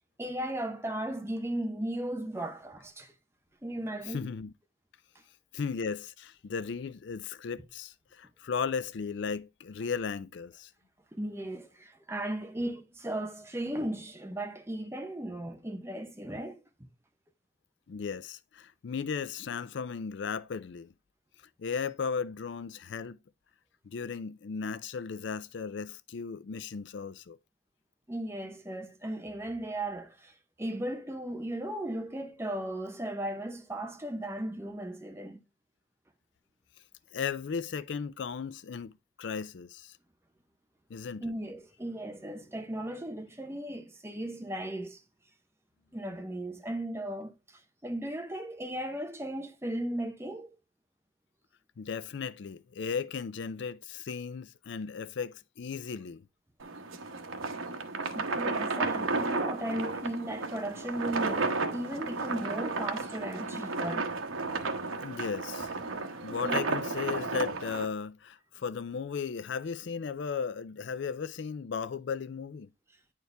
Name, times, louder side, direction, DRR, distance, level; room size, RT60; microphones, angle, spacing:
voice 1, 0.2-3.1 3.6-4.3 11.1-16.9 28.1-35.4 41.2-45.0 45.9-50.5 58.1-64.1 66.3-66.6, right 1 dB, 15° right, 0.8 m, -36 dB
voice 2, 4.1-4.5 5.5-10.7 17.9-20.9 21.6-23.2 23.8-27.4 37.1-38.9 39.2-40.0 40.9-41.2 51.8-56.2 62.3-62.4 65.0-65.7 66.2-72.7, left 6 dB, 60° left, 0.4 m, -36 dB
sound 1, 56.6-67.9, right 3 dB, 85° right, 1.0 m, -33 dB
9.4 x 4.5 x 3.3 m
head